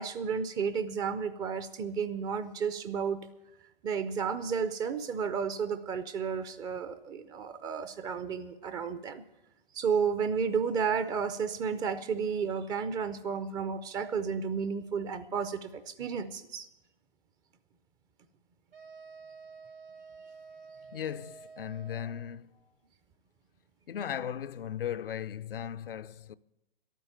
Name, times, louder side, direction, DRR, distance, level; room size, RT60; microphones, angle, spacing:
voice 1, 0.0-3.2 3.8-9.2 9.7-16.7, right 6 dB, 15° right, 0.5 m, -32 dB
sound 1, 18.7-22.4, right 5 dB, 75° right, 2.9 m, -50 dB
voice 2, 20.9-22.6 23.9-26.4, left 9 dB, 70° left, 0.6 m, -37 dB
12.0 x 9.1 x 8.6 m
hypercardioid pair, 125°, 29 cm